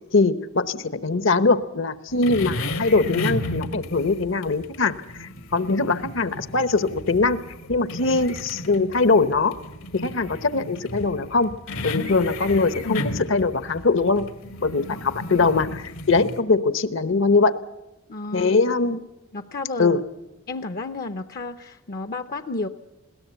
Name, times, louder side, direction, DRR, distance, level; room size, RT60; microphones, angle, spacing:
voice 1, 0.1-4.9 5.2-7.4 7.7-9.6 9.9-14.3 14.6-17.6 18.3-19.0 19.8-20.0, left 3 dB, 60° left, 13 dB, 1.0 m, -22 dB
sound 1, 2.1-16.4, left 1 dB, 75° left, 1.7 m, -34 dB
voice 2, 18.1-18.5 19.3-20.0 20.5-22.7, left 3 dB, 45° left, 10 dB, 0.7 m, -32 dB
21.0 x 17.5 x 8.1 m, 0.97 s
head